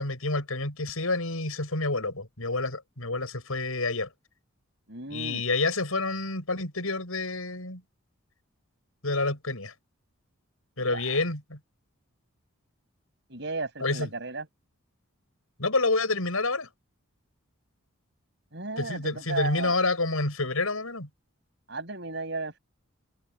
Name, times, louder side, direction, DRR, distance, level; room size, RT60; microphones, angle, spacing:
voice 1, 0.0-4.1 5.1-7.8 9.0-9.7 10.8-11.6 13.8-14.1 15.6-16.7 18.8-21.1, left 3 dB, 80° left, 6.9 m, -28 dB
voice 2, 4.9-5.4 10.9-11.0 13.3-14.5 18.5-19.7 21.7-22.6, right 3 dB, 55° right, 6.9 m, -34 dB
head